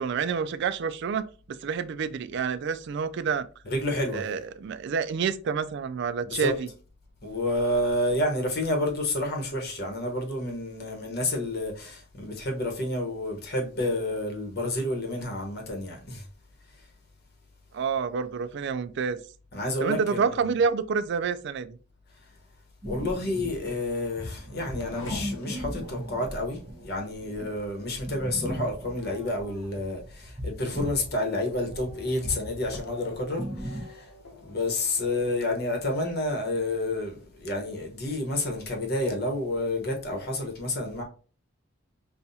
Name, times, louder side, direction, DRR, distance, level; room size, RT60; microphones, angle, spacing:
voice 1, 0.0-3.5 4.1-6.7 17.7-19.2 19.8-21.8, right 6 dB, 55° right, 0.3 m, -28 dB
voice 2, 3.7-4.3 6.2-6.6 7.2-16.3 19.5-20.4 22.8-34.1 34.4-41.0, left 1 dB, 50° left, 1.0 m, -29 dB
sound 1, 22.8-31.1 31.4-33.8, equal, 20° right, 0.8 m, -38 dB
Race car auto racing / Accelerating revving vroom, 23.6-36.8 37.2-37.9, left 2 dB, 85° left, 0.9 m, -48 dB
5.6 x 2.3 x 2.7 m
head